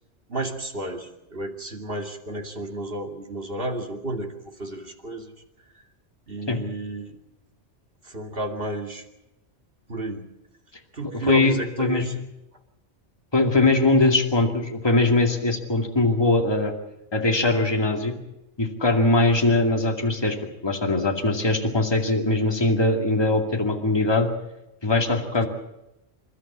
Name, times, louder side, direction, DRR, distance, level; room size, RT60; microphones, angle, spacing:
voice 1, 0.3-5.3 5.7-5.8 6.3-7.2 8.0-9.1 9.9-10.3 10.9-12.2 14.0-14.1, right 1 dB, 50° right, 3 dB, 2.7 m, -32 dB
voice 2, 11.3-12.2 13.3-16.7 17.1-18.2 18.6-20.4 20.6-24.3 24.8-25.5, left 2 dB, 20° left, 3 dB, 2.4 m, -21 dB
28.0 x 13.0 x 8.6 m, 0.93 s
omnidirectional pair, 1.3 m